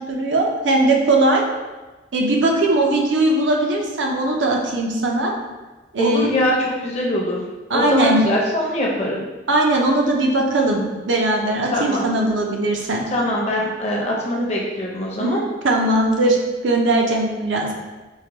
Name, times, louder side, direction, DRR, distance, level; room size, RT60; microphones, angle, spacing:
voice 1, 0.1-1.4 2.1-5.3 5.9-6.4 7.7-8.2 9.5-13.0 15.2-15.3 15.6-16.4 16.6-17.7, right 2 dB, 75° right, 1 dB, 0.6 m, -19 dB
voice 2, 6.0-7.4 7.7-9.2 11.7-12.0 13.1-15.4, left 1 dB, 35° left, -3 dB, 0.6 m, -22 dB
4.7 x 2.2 x 2.9 m, 1.2 s
head